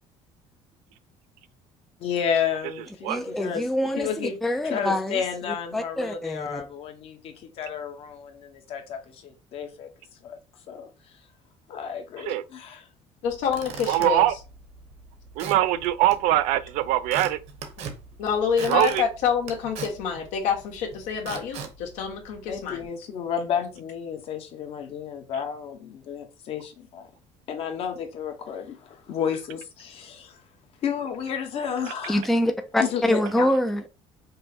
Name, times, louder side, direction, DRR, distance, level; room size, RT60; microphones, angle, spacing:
voice 1, 2.0-3.7 4.0-4.3 4.6-9.9 10.2-10.4 10.7-10.9 11.7-12.9 22.5-27.1 27.5-30.4 30.8-32.2 32.8-33.2, left 7 dB, 50° left, 1.0 m, -31 dB
voice 2, 3.1-5.2 5.7-6.6 32.1-33.8, left 1 dB, ahead, 0.4 m, -25 dB
voice 3, 13.2-14.4 18.2-22.8 33.3-33.4, left 7 dB, 80° left, 1.5 m, -27 dB
Squeak / Wood, 13.2-22.9, right 5 dB, 65° right, 1.0 m, -41 dB
voice 4, 13.9-14.3 15.4-17.4 18.7-19.0, right 14 dB, 85° right, 0.4 m, -22 dB
5.3 x 2.1 x 4.2 m
cardioid pair, 150°, 12 cm